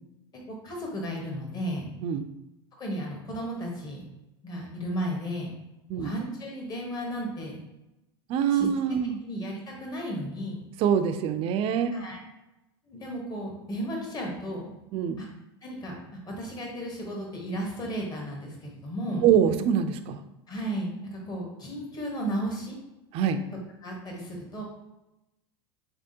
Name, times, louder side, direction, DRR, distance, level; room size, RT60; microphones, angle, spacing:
voice 1, 0.5-1.8 2.8-4.0 4.4-5.5 6.0-7.6 8.5-8.7 9.2-10.6 11.9-12.2 12.9-14.7 15.2-15.3 15.6-19.2 20.5-22.8 23.8-24.6, equal, 30° left, 0 dB, 1.2 m, -34 dB
voice 2, 8.3-9.2 10.8-11.9 14.9-15.2 19.2-20.2 23.1-23.4, right 8 dB, 45° right, 9 dB, 0.4 m, -24 dB
3.5 x 3.4 x 2.7 m, 0.95 s
hypercardioid pair, 100°, 14 cm